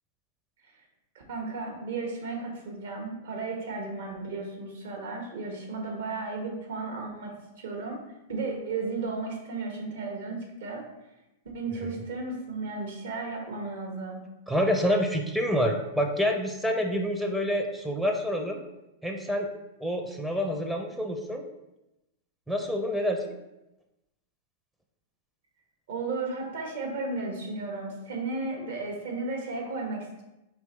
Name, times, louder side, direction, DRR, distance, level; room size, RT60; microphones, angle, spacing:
voice 1, 1.3-8.0 8.3-10.8 11.5-14.2 25.9-30.2, right 3 dB, 70° right, 1 dB, 1.1 m, -34 dB
voice 2, 14.5-18.6 19.0-19.5 19.8-21.4 22.5-23.2, equal, 5° right, 3 dB, 0.4 m, -27 dB
4.5 x 2.9 x 3.2 m, 0.95 s
hypercardioid pair, 110°, 0 cm